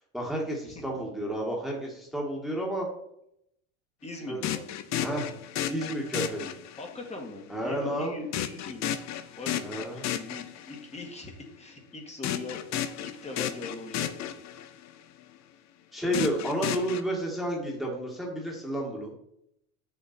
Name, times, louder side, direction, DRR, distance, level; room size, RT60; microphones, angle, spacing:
voice 1, 0.1-2.9 4.3-4.4 5.0-5.3 5.7-6.6 7.5-8.1 9.6-10.1 15.9-19.1, right 1 dB, ahead, -2 dB, 2.1 m, -31 dB
voice 2, 4.0-4.7 6.8-9.0 9.4-12.6 13.0-14.5, left 3 dB, 15° left, 2 dB, 2.0 m, -41 dB
sound 1, 4.4-7.1 8.3-11.0 12.2-14.9 16.1-17.0, left 11 dB, 45° left, 0.8 m, -33 dB
7.6 x 7.0 x 4.4 m, 0.76 s
supercardioid pair, 120°, 40 cm